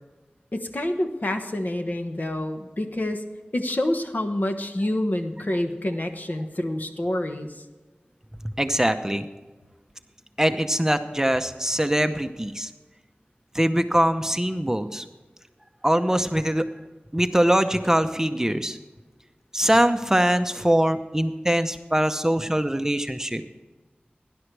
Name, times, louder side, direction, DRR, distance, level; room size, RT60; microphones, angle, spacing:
voice 1, 0.5-3.2 3.5-7.6, left 1 dB, 55° left, 5 dB, 1.3 m, -27 dB
voice 2, 8.4-9.3 10.4-12.7 13.5-15.1 15.8-16.7 17.1-18.8 19.5-23.4, right 1 dB, 15° right, 8 dB, 0.7 m, -22 dB
18.5 x 11.0 x 3.4 m, 1.2 s
wide cardioid pair, 60°, 4 cm